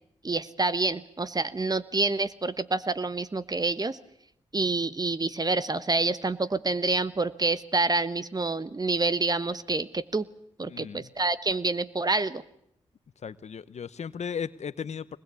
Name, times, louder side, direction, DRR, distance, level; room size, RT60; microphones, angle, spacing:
voice 1, 0.2-4.0 4.5-10.3 10.6-12.4, right 3 dB, 30° right, 14 dB, 1.3 m, -27 dB
voice 2, 10.7-11.1 13.2-15.2, left 7 dB, 65° left, 16 dB, 0.9 m, -36 dB
22.5 x 20.5 x 8.4 m, 0.76 s
supercardioid pair, 40°, 12 cm